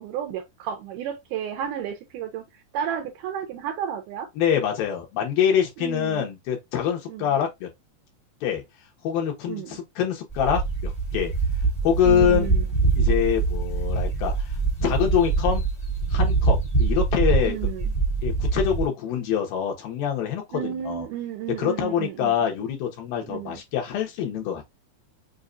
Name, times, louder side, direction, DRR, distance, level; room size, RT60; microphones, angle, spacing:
voice 1, 0.0-2.4 2.7-4.3 5.8-6.3 7.1-7.4 9.5-9.8 12.0-12.7 17.5-17.9 20.5-22.3 23.3-23.6, right 9 dB, 80° right, 2.0 m, -32 dB
voice 2, 4.4-7.7 8.4-8.6 9.0-11.3 11.8-12.5 13.0-14.5 14.8-15.6 16.1-17.6 18.2-21.1 21.6-24.7, left 9 dB, 80° left, 2.9 m, -25 dB
sound 1, 10.3-18.9, right 4 dB, 20° left, 1.2 m, -24 dB
6.3 x 2.3 x 2.5 m
omnidirectional pair, 4.1 m